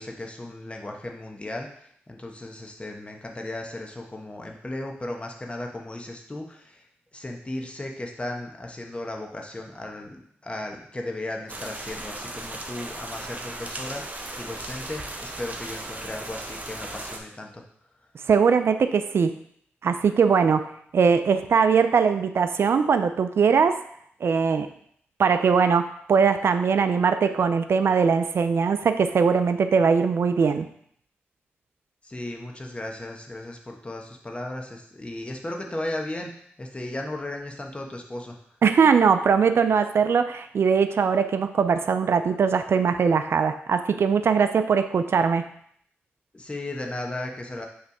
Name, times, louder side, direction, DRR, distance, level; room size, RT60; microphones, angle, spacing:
voice 1, 0.0-1.7 2.1-6.8 7.1-10.2 10.4-14.0 14.4-17.6 32.0-38.4 39.7-39.8 46.3-47.7, left 1 dB, 25° left, 2 dB, 1.2 m, -35 dB
sound 1, 11.5-17.2, right 2 dB, 35° right, 0.9 m, -37 dB
voice 2, 18.3-19.3 19.8-23.8 24.2-24.7 25.2-30.7 38.6-45.5, right 6 dB, 70° right, 9 dB, 0.4 m, -21 dB
5.5 x 3.3 x 5.3 m, 0.65 s
cardioid pair, 60°, 4 cm